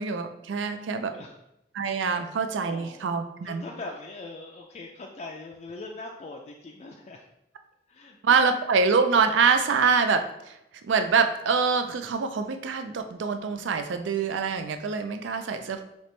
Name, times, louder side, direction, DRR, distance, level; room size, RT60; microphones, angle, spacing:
voice 1, 0.0-1.1 1.7-3.7 8.2-10.6 10.8-15.8, right 5 dB, 90° right, 8 dB, 0.4 m, -25 dB
voice 2, 0.6-1.4 2.7-3.1 3.4-7.2 7.9-8.4, left 2 dB, 40° left, 0 dB, 0.3 m, -42 dB
4.4 x 3.0 x 3.2 m, 0.85 s
head